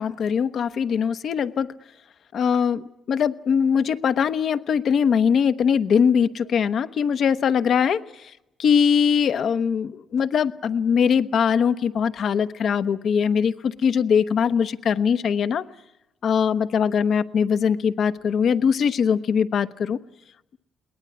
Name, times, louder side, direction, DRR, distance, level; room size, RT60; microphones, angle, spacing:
voice 1, 0.0-1.7 2.3-8.0 8.6-15.6 16.2-20.0, left 7 dB, 60° left, 11 dB, 0.9 m, -21 dB
22.0 x 19.0 x 9.8 m, 0.94 s
cardioid pair, 90°, 0 cm